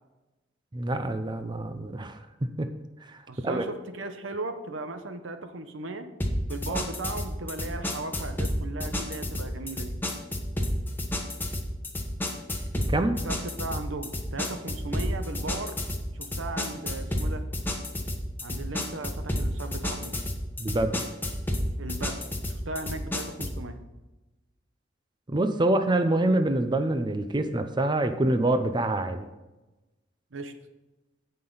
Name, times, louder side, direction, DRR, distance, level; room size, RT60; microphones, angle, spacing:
voice 1, 0.7-2.7 3.0-3.2 3.4-3.6 6.7-6.8 12.7-13.2 20.6-21.0 25.3-29.2, right 1 dB, 25° right, 8 dB, 0.6 m, -26 dB
voice 2, 3.3-6.1 6.5-10.0 13.1-15.8 16.1-17.4 18.4-20.2 21.8-23.8 30.3-30.5, right 2 dB, 90° right, 8 dB, 1.0 m, -37 dB
sound 1, 6.2-23.6, left 1 dB, 10° left, 1.2 m, -31 dB
16.5 x 5.7 x 4.0 m, 1.1 s
head